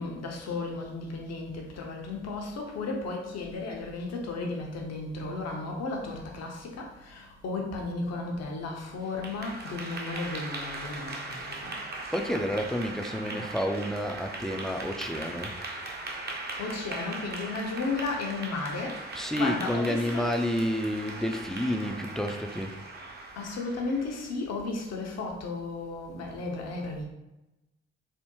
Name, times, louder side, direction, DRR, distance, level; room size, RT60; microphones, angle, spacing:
voice 1, 0.0-11.2 11.5-11.7 16.6-20.3 23.4-27.0, left 3 dB, 60° left, 1 dB, 0.7 m, -34 dB
Clapping / Applause, 9.0-24.3, right 2 dB, 35° right, 0.7 m, -39 dB
voice 2, 12.1-15.5 19.1-22.7, equal, ahead, 4 dB, 0.4 m, -30 dB
3.4 x 2.1 x 2.9 m, 0.97 s
hypercardioid pair, 45°, 29 cm